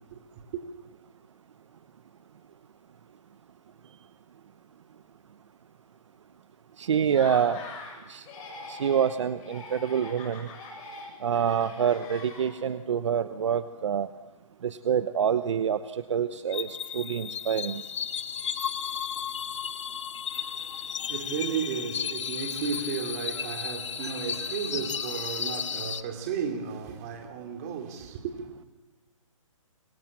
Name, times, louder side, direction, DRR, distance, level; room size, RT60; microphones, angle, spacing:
voice 1, 6.8-7.6 8.1-8.3 8.7-10.5 11.2-14.1 14.6-17.8, right 8 dB, 60° right, 1.0 m, -27 dB
Laughter, 7.0-8.0 8.2-9.1 9.4-12.8, left 3 dB, 20° left, 7.6 m, -43 dB
sound 1, 16.5-26.0, left 8 dB, 60° left, 1.4 m, -34 dB
voice 2, 20.3-28.5, right 7 dB, 30° right, 3.2 m, -34 dB
27.0 x 24.0 x 7.5 m
hypercardioid pair, 165°, 17 cm